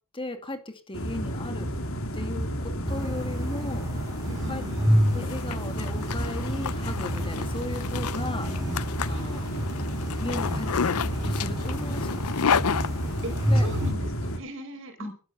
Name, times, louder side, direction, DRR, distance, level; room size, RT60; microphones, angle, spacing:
voice 1, 0.1-1.7 2.1-4.1 4.4-4.6 5.1-9.4 10.2-12.4 13.5-13.7 15.0-15.1, left 1 dB, 25° left, 8 dB, 2.2 m, -37 dB
sound 1, 0.9-14.4, equal, 70° left, 3.1 m, -31 dB
sound 2, 2.9-13.9, equal, 15° right, 5.5 m, -31 dB
voice 2, 4.2-5.0 9.0-9.9 13.2-15.1, right 1 dB, 60° right, 8 dB, 4.8 m, -40 dB
Zipper (clothing), 4.9-13.6, left 6 dB, 90° left, 0.7 m, -31 dB
14.5 x 12.5 x 6.8 m, 0.39 s
head